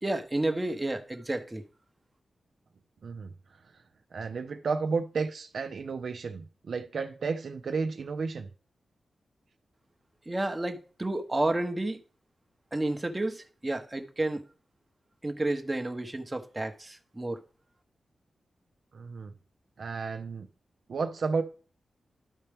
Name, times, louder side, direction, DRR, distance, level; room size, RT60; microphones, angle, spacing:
voice 1, 0.0-1.6 10.3-12.0 12.7-14.4 15.2-17.4, right 2 dB, 20° right, 0.9 m, -31 dB
voice 2, 3.0-3.3 4.1-8.5 18.9-19.3 19.8-20.5 20.9-21.4, right 4 dB, 70° right, 0.6 m, -32 dB
12.0 x 4.4 x 3.5 m
wide cardioid pair, 105°, 0 cm